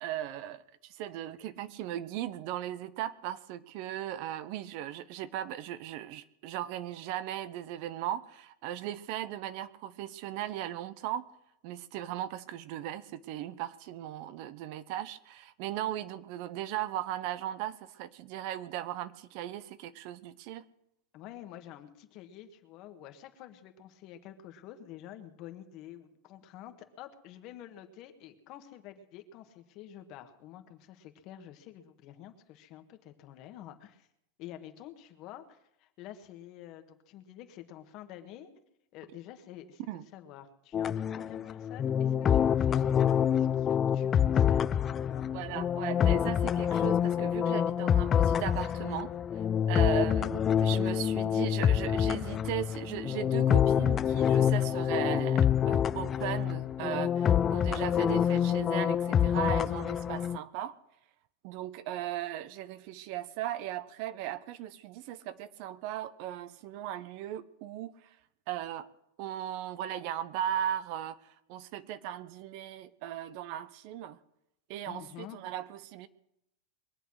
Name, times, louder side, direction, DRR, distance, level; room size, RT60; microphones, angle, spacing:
voice 1, 0.0-11.3 11.6-20.6 39.9-40.0 45.3-49.1 49.7-60.8 61.4-68.1 68.5-68.9 69.2-74.2 74.7-76.1, right 12 dB, 55° right, 15 dB, 0.8 m, -37 dB
voice 2, 21.1-34.1 34.4-38.5 38.9-44.7 45.1-45.3 74.9-75.4, left 11 dB, 45° left, 7 dB, 1.6 m, -49 dB
sound 1, 40.7-60.4, left 9 dB, 25° left, 0.4 m, -27 dB
22.0 x 8.0 x 6.4 m, 0.81 s
supercardioid pair, 125°, 0 cm